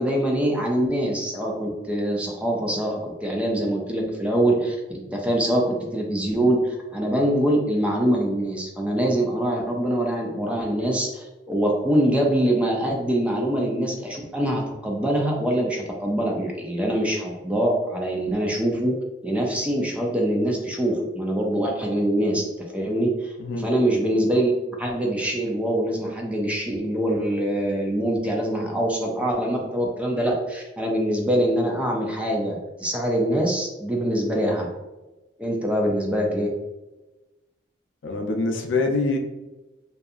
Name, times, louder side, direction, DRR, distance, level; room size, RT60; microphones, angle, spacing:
voice 1, 0.0-19.0 19.2-24.5 24.8-34.7 35.4-36.5, right 1 dB, 5° right, -1 dB, 0.4 m, -24 dB
voice 2, 38.0-39.2, left 3 dB, 75° left, 3 dB, 0.4 m, -24 dB
2.7 x 2.3 x 2.4 m, 1.1 s
head